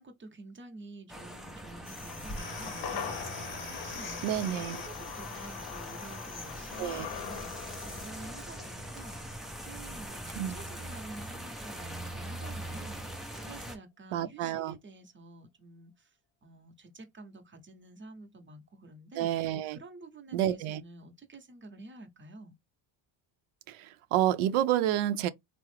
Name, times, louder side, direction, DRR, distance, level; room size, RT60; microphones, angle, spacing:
voice 1, 0.0-9.3 9.6-16.2 16.4-22.5, right 2 dB, 25° right, 0.8 m, -50 dB
sound 1, 1.1-13.8, right 1 dB, ahead, 0.4 m, -42 dB
sound 2, 1.8-8.1, left 3 dB, 25° left, 0.9 m, -44 dB
sound 3, 2.1-10.6 10.9-11.0, left 7 dB, 55° left, 0.7 m, -43 dB
voice 2, 4.2-4.8 6.8-7.1 10.4-10.5 14.1-14.8 19.2-19.8 20.3-20.8 23.7-25.3, right 12 dB, 90° right, 0.6 m, -29 dB
3.6 x 2.0 x 3.1 m
cardioid pair, 125°, 49 cm